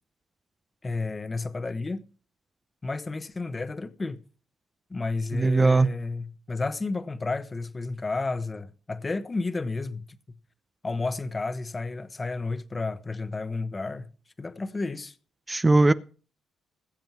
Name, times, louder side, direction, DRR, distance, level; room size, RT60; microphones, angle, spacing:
voice 1, 0.8-2.0 2.8-4.2 4.9-10.0 10.8-14.1 14.4-15.1, left 3 dB, 25° left, 1.1 m, -31 dB
voice 2, 5.3-5.9 15.5-15.9, right 2 dB, 20° right, 0.6 m, -19 dB
19.5 x 7.6 x 4.6 m
cardioid pair, 90°, 0 cm